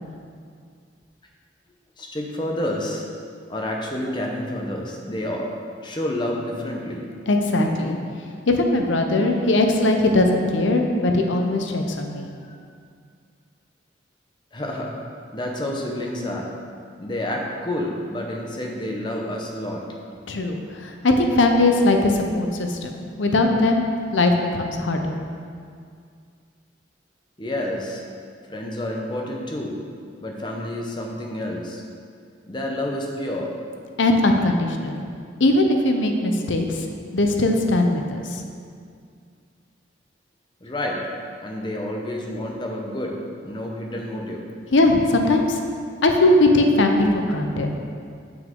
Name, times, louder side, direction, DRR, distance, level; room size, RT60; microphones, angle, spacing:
voice 1, 2.0-3.0 3.5-5.5 5.8-7.1 12.1-12.7 14.5-14.9 15.3-16.5 17.0-19.8 27.4-28.0 28.5-29.8 30.2-31.8 32.5-33.5 40.6-41.1 41.4-43.2 43.4-44.4, left 1 dB, 25° left, 0 dB, 0.7 m, -29 dB
voice 2, 7.3-8.0 8.5-12.3 20.3-23.8 24.1-25.2 34.0-35.0 35.4-36.9 37.1-38.4 44.7-45.6 46.0-47.7, left 2 dB, 75° left, 4 dB, 0.7 m, -20 dB
7.2 x 6.1 x 3.7 m, 2.2 s
head